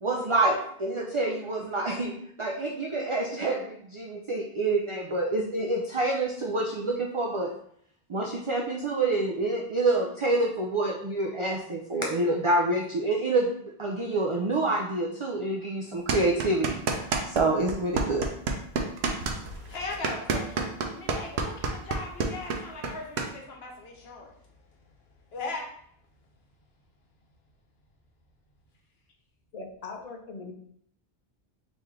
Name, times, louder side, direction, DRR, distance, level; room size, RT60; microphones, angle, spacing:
voice 1, 0.0-7.5 8.1-13.5 13.8-18.3, right 2 dB, 60° right, 0 dB, 0.3 m, -27 dB
sound 1, 16.1-17.4 17.7-23.3, right 4 dB, 85° right, 0.8 m, -28 dB
voice 2, 19.2-24.5 25.3-25.7, left 3 dB, 75° left, 1 dB, 1.0 m, -39 dB
voice 3, 29.5-30.5, left 3 dB, 45° left, 3 dB, 0.6 m, -40 dB
3.6 x 3.1 x 3.1 m, 0.67 s
omnidirectional pair, 1.1 m